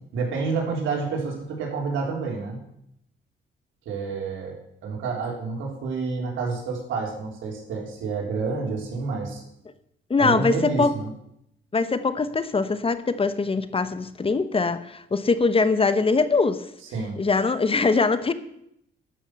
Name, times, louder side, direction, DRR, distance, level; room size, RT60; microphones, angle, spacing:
voice 1, 0.1-2.6 3.9-9.4 10.2-11.1 16.9-17.2, right 4 dB, 85° right, 0 dB, 3.5 m, -29 dB
voice 2, 10.1-10.9 11.7-16.6 17.2-18.3, left 4 dB, 30° left, 13 dB, 0.8 m, -22 dB
12.0 x 6.3 x 7.6 m, 0.76 s
cardioid pair, 90°, 20 cm